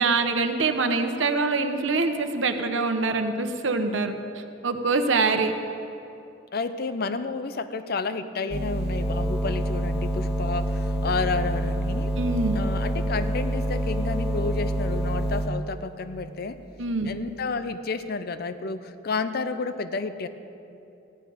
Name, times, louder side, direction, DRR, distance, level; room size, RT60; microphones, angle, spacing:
voice 1, 0.0-4.2 4.6-5.5 12.2-12.6 16.8-17.1, right 3 dB, 75° right, 6 dB, 1.0 m, -24 dB
voice 2, 6.5-12.1 12.5-16.6 17.0-20.3, left 4 dB, 55° left, 11 dB, 0.6 m, -31 dB
sound 1, 8.5-15.5, right 1 dB, 55° right, 1.7 m, -27 dB
Wind instrument woodwind instrument, 9.0-15.8, left 5 dB, 5° left, 0.3 m, -38 dB
15.0 x 11.0 x 5.0 m, 2.7 s
head